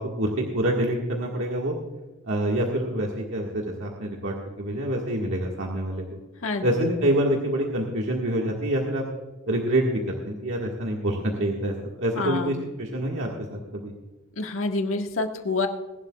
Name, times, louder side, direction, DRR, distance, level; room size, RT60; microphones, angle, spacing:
voice 1, 0.0-1.8 2.3-6.2 6.6-9.0 9.5-13.9, right 1 dB, 65° right, -1 dB, 1.7 m, -26 dB
voice 2, 6.4-6.9 12.2-12.5 14.4-15.7, left 3 dB, 70° left, 4 dB, 1.6 m, -27 dB
21.5 x 11.5 x 2.4 m, 1.2 s
head